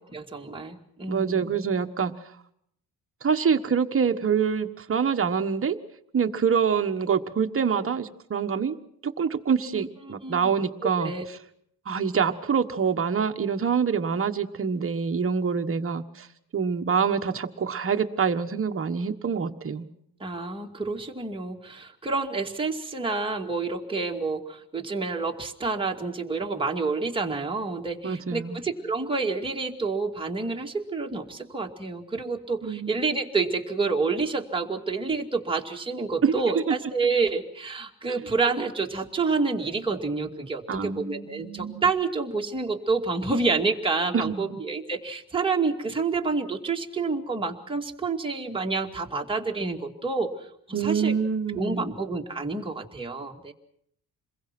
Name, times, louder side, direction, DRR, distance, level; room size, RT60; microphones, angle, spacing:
voice 1, 0.1-1.4 9.7-10.5 10.8-11.2 20.2-51.1 51.5-53.5, right 4 dB, 15° right, 1 dB, 2.4 m, -28 dB
voice 2, 1.1-2.1 3.2-5.8 6.1-8.8 9.0-11.1 11.9-16.3 16.5-19.9 28.0-28.6 32.6-32.9 36.2-36.4 36.7-36.8 40.7-41.9 44.1-44.6 50.7-51.9, right 6 dB, 35° right, 7 dB, 1.4 m, -26 dB
28.0 x 22.0 x 6.0 m, 0.69 s
cardioid pair, 125°, 38 cm